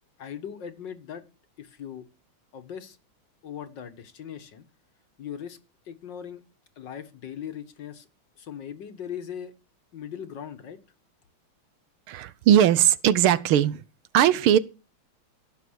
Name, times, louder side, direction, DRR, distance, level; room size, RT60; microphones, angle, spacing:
voice 1, 0.2-1.2 1.6-2.0 2.5-3.0 3.4-4.6 5.2-5.6 5.9-6.4 6.8-8.1 8.4-9.5 9.9-10.8, left 8 dB, 60° left, 2.0 m, -39 dB
voice 2, 12.1-13.8 14.1-14.6, right 10 dB, 80° right, 1.7 m, -19 dB
17.0 x 6.9 x 6.4 m
omnidirectional pair, 2.4 m